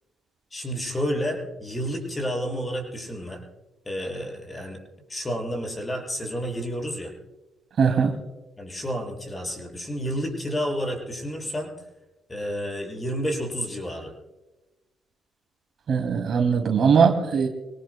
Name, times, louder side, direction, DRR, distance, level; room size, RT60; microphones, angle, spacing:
voice 1, 0.5-3.4 3.8-4.8 5.1-7.1 8.6-11.7 12.3-14.1, equal, 20° left, 1 dB, 6.8 m, -30 dB
voice 2, 7.8-8.1 15.9-17.5, right 6 dB, 60° right, 5 dB, 2.5 m, -20 dB
26.0 x 18.5 x 2.2 m, 1.1 s
cardioid pair, 90°, 0 cm